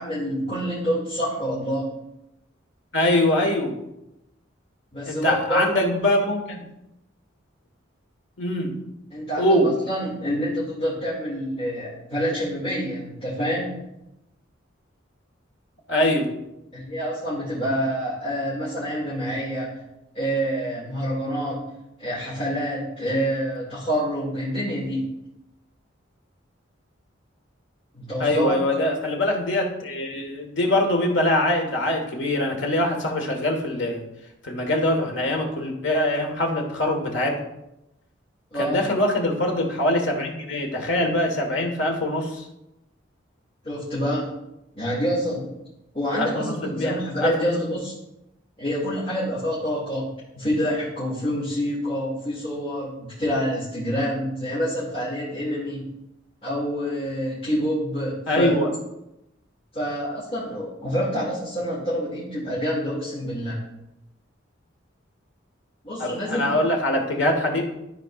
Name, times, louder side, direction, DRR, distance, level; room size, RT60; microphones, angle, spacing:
voice 1, 0.0-1.9 4.9-5.6 9.1-13.8 16.7-19.8 20.1-21.6 22.0-25.1 27.9-28.6 38.5-38.8 43.6-44.3 44.7-45.4 45.9-47.9 48.6-55.8 56.4-58.5 59.7-63.6 65.8-66.5, equal, 30° left, -10 dB, 2.4 m, -27 dB
voice 2, 2.9-3.7 5.0-6.6 8.4-8.8 9.4-9.7 15.9-16.3 28.2-34.0 34.4-37.4 38.6-42.4 46.2-47.6 58.3-58.7 66.0-67.6, left 1 dB, 70° left, 2 dB, 1.5 m, -23 dB
13.0 x 4.5 x 2.5 m, 0.88 s
head